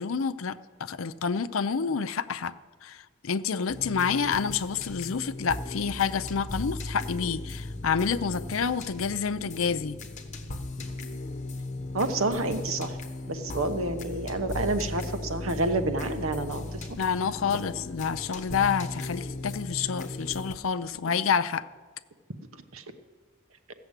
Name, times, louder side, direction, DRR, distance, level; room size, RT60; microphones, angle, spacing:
voice 1, 0.0-2.5 2.8-10.0 17.0-21.6, left 6 dB, 80° left, 0.6 m, -28 dB
sound 1, 3.7-20.5, left 2 dB, 35° left, 1.2 m, -37 dB
voice 2, 11.9-13.0 13.3-16.8 22.7-22.8, right 2 dB, 85° right, 1.0 m, -29 dB
15.5 x 6.9 x 8.1 m
head